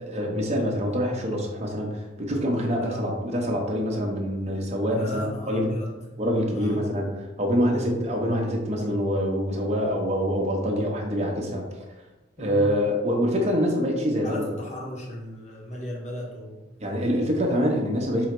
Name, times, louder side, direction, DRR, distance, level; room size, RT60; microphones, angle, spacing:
voice 1, 0.0-5.7 6.2-11.6 12.4-14.5 16.8-18.3, equal, 35° right, 0 dB, 0.8 m, -25 dB
voice 2, 4.9-6.2 6.5-7.0 7.6-8.0 12.4-12.7 14.2-16.7, equal, 40° left, -2 dB, 1.0 m, -37 dB
4.7 x 3.3 x 3.0 m, 1.1 s
head